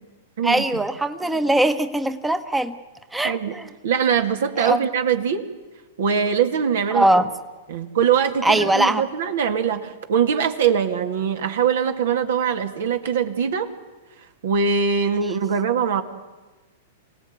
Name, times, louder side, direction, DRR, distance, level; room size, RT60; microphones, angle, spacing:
voice 1, 0.4-2.8 3.1-3.7 4.6-4.8 6.9-7.3 8.4-9.0, right 1 dB, 5° right, 9 dB, 1.0 m, -21 dB
voice 2, 3.8-5.4 6.0-7.2 7.7-13.7 14.4-16.0, right 7 dB, 75° right, 6 dB, 2.2 m, -22 dB
25.5 x 17.5 x 9.5 m, 1.2 s
hypercardioid pair, 120°, 0 cm